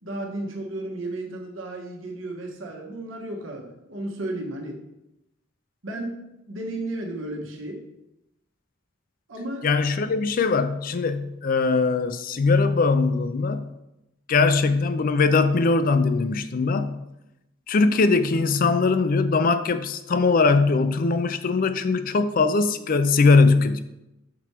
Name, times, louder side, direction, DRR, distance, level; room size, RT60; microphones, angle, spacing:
voice 1, 0.0-4.8 5.8-6.2 6.5-7.8 9.3-9.6, right 1 dB, 80° right, 0 dB, 1.3 m, -33 dB
voice 2, 9.6-13.6 14.3-17.0 17.7-23.8, left 4 dB, 45° left, 11 dB, 0.4 m, -21 dB
6.0 x 4.7 x 4.4 m, 0.90 s
head